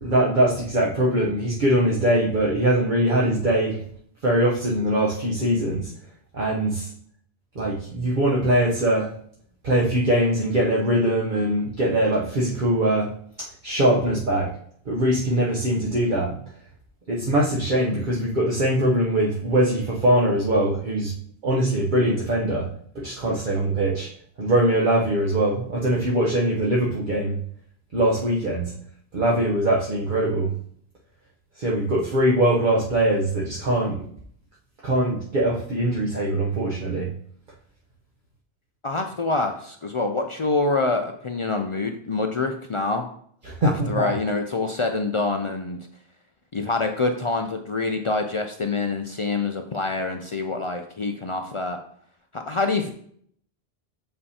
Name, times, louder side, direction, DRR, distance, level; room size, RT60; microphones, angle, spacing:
voice 1, 0.0-3.8 4.2-5.9 6.3-6.9 7.5-9.1 9.6-13.1 13.4-14.5 14.9-16.4 17.1-21.1 21.4-24.1 24.4-27.4 27.9-28.8 29.1-30.6 31.6-34.0 34.8-37.2 43.5-44.1, right 1 dB, 50° right, -4 dB, 0.9 m, -22 dB
voice 2, 38.8-43.0 43.6-45.8 46.5-51.8 52.3-52.9, left 3 dB, 55° left, 4 dB, 0.3 m, -26 dB
6.8 x 5.4 x 2.8 m, 0.63 s
omnidirectional pair, 1.1 m